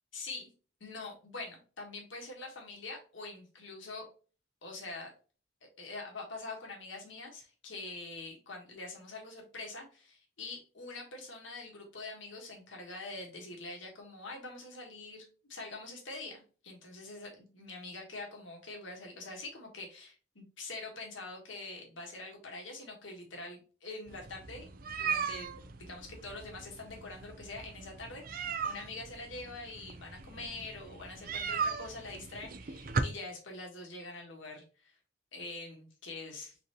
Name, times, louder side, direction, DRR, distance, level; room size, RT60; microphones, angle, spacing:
voice 1, 0.1-0.5 0.8-4.0 4.6-5.1 5.6-15.2 15.5-35.0 35.3-36.6, left 3 dB, 75° left, 1 dB, 1.6 m, -45 dB
sound 1, 24.1-33.0, right 5 dB, 45° right, 0.5 m, -38 dB
4.0 x 3.9 x 3.0 m, 0.37 s
head